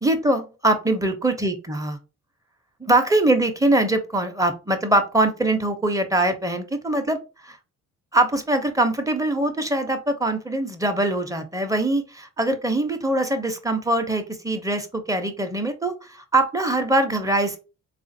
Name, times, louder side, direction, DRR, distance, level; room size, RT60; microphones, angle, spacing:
voice 1, 0.0-2.0 2.8-7.6 8.1-17.6, right 1 dB, 10° right, 7 dB, 0.6 m, -23 dB
3.6 x 2.4 x 2.7 m, 0.31 s
cardioid pair, 90°, 30 cm